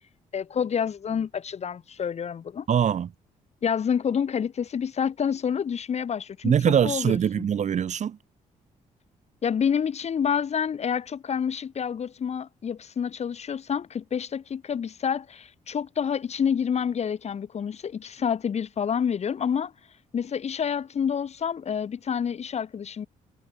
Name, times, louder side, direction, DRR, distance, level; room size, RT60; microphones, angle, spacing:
voice 1, 0.3-2.7 3.6-7.4 9.4-19.7 20.1-23.1, left 7 dB, 50° left, 4.5 m, -28 dB
voice 2, 2.7-3.1 6.4-8.2, right 8 dB, 55° right, 4.4 m, -23 dB
cardioid pair, 85°, 14 cm